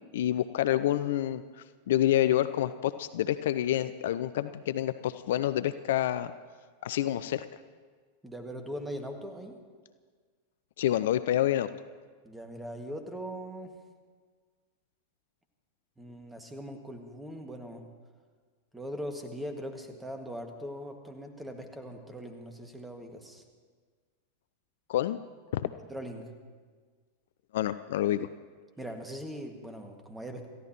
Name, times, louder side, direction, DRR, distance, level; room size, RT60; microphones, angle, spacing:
voice 1, 0.0-1.4 1.9-6.3 6.8-7.5 10.8-11.7 24.9-25.2 25.5-25.7 27.5-28.3, left 12 dB, 55° left, 13 dB, 0.5 m, -28 dB
voice 2, 8.2-9.6 12.2-13.8 16.0-17.9 18.7-23.4 25.6-26.3 28.8-30.5, equal, 5° right, 5 dB, 2.0 m, -40 dB
28.0 x 15.0 x 3.0 m, 1.6 s
figure-of-eight pair, 90°, 0 cm